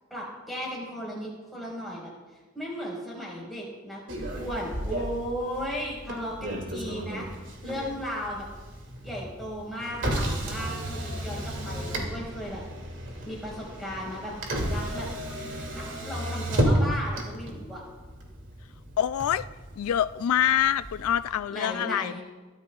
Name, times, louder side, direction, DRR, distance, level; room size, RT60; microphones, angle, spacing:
voice 1, 0.1-2.1 2.5-7.3 7.6-8.4 9.0-12.6 13.2-14.3 14.7-15.1 15.7-17.8 21.5-22.2, equal, ahead, -5 dB, 4.8 m, -36 dB
Motor vehicle (road), 4.1-21.2, right 1 dB, 55° right, 2.5 m, -33 dB
voice 2, 19.0-19.5 19.8-22.2, left 10 dB, 80° left, 15 dB, 0.3 m, -25 dB
23.5 x 13.0 x 2.4 m, 1.3 s
head